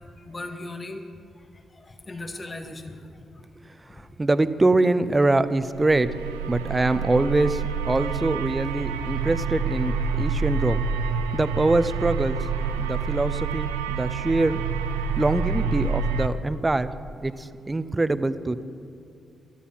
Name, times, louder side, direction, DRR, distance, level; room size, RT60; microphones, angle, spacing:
voice 1, 0.2-1.0 1.8-3.0 12.5-12.7 14.4-14.6, left 2 dB, 35° left, 5 dB, 1.9 m, -38 dB
voice 2, 4.2-6.1 6.5-10.8 11.3-12.4 12.8-14.6 15.2-16.9 17.2-18.6, right 2 dB, 25° right, 13 dB, 0.8 m, -24 dB
sound 1, 5.6-16.3, right 5 dB, 90° right, 0.5 m, -28 dB
16.5 x 13.0 x 5.8 m, 2.6 s
hypercardioid pair, 40°, 0 cm